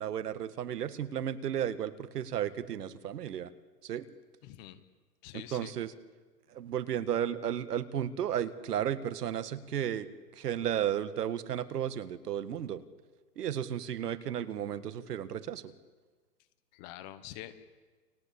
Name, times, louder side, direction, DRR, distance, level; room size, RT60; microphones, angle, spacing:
voice 1, 0.0-3.5 3.8-4.1 5.3-5.9 6.5-10.1 10.4-12.8 13.4-15.6, right 10 dB, 70° right, 13 dB, 1.8 m, -33 dB
voice 2, 4.4-4.8 5.2-5.7 16.7-17.6, left 13 dB, 25° left, 11 dB, 1.2 m, -46 dB
30.0 x 21.0 x 8.6 m, 1.4 s
hypercardioid pair, 155°, 49 cm